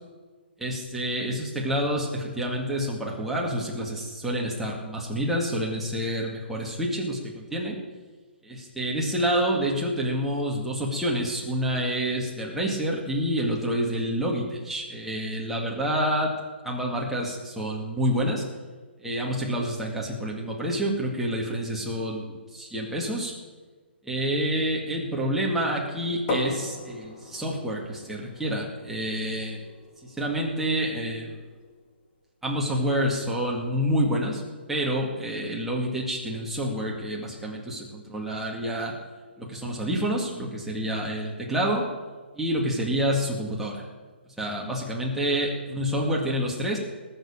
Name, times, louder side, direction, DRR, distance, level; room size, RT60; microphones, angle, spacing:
voice 1, 0.6-7.8 8.4-16.3 16.6-18.4 19.0-23.3 24.0-29.6 30.0-31.4 32.4-34.4 34.7-38.9 39.4-41.9 42.4-43.8 44.3-46.8, equal, 5° right, -3 dB, 2.0 m, -28 dB
sound 1, 26.3-31.9, left 2 dB, 30° left, 2.7 m, -37 dB
20.0 x 6.9 x 7.2 m, 1.4 s
hypercardioid pair, 155°, 6 cm